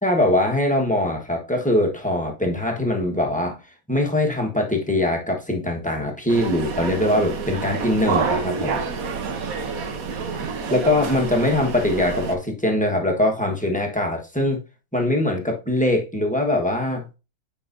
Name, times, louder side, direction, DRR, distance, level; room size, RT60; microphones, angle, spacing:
voice 1, 0.0-3.6 3.9-8.8 10.7-14.6 14.9-17.0, left 1 dB, 5° left, 1.1 m, -22 dB
sound 1, 6.3-12.3, right 5 dB, 70° right, 1.4 m, -28 dB
9.0 x 5.3 x 2.6 m
omnidirectional pair, 1.6 m